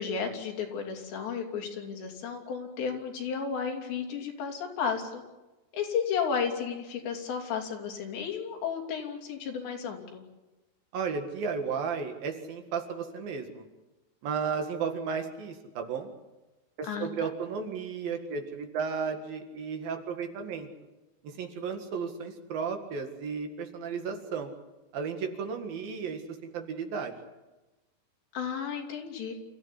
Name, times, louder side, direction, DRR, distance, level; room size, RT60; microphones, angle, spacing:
voice 1, 0.0-5.2 5.7-10.2 16.8-17.3 28.3-29.3, left 6 dB, 80° left, 2 dB, 5.3 m, -33 dB
voice 2, 10.9-13.6 14.2-16.1 16.8-20.7 21.2-24.5 24.9-27.1, right 6 dB, 60° right, 5 dB, 3.5 m, -34 dB
28.5 x 15.0 x 10.0 m, 1.1 s
omnidirectional pair, 4.9 m